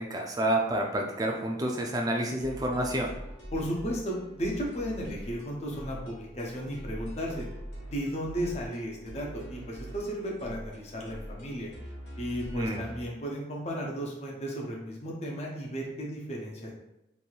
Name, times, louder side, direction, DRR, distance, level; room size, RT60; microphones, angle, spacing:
voice 1, 0.0-3.1 12.5-12.9, right 1 dB, 20° right, 1 dB, 0.4 m, -29 dB
sound 1, 2.4-13.1, right 1 dB, 80° left, 1.1 m, -43 dB
voice 2, 3.5-7.5 7.9-11.7 12.2-16.7, equal, 35° left, -2 dB, 0.5 m, -34 dB
3.0 x 2.6 x 2.3 m, 0.91 s
head